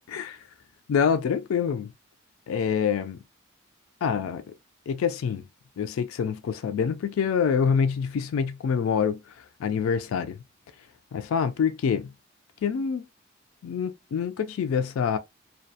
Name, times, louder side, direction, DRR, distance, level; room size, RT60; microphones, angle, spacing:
voice 1, 0.1-0.4 0.9-1.9 2.5-3.2 4.0-4.4 4.9-5.5 5.8-10.4 11.1-12.1 12.6-13.1 13.6-15.2, left 6 dB, 85° left, 0.3 m, -26 dB
2.3 x 2.2 x 2.6 m
head